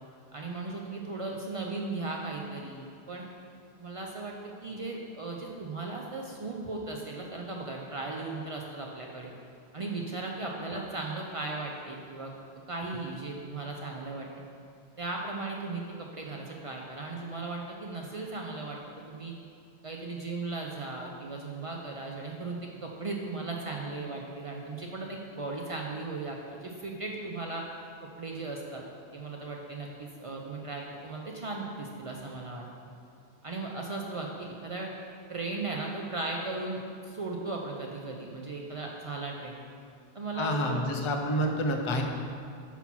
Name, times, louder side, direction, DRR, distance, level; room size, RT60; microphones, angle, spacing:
voice 1, 0.3-3.3 3.8-9.3 9.7-12.3 12.7-14.3 15.0-18.8 19.1-19.3 19.8-27.6 28.2-28.8 29.1-32.7 33.4-34.9 35.3-39.6 40.1-40.8, right 3 dB, 50° right, -1 dB, 0.4 m, -37 dB
voice 2, 40.3-42.0, equal, 40° left, 3 dB, 0.4 m, -28 dB
5.6 x 4.0 x 5.9 m, 2.4 s
omnidirectional pair, 1.1 m